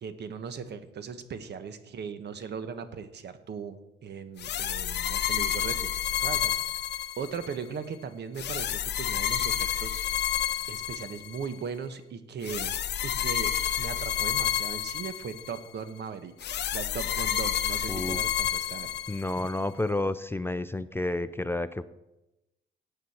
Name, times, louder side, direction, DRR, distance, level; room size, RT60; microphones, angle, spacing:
voice 1, 0.0-5.9 6.2-6.6 7.2-10.0 10.7-12.7 13.0-16.3 16.7-18.9, right 6 dB, 60° right, 10 dB, 1.2 m, -38 dB
sound 1, 4.4-7.5 8.4-11.5 12.4-15.6 16.4-19.5, left 10 dB, 60° left, 0.7 m, -30 dB
voice 2, 17.9-18.2 19.1-21.8, left 2 dB, 10° left, 13 dB, 0.4 m, -30 dB
16.0 x 8.9 x 4.4 m, 0.97 s
cardioid pair, 90°, 20 cm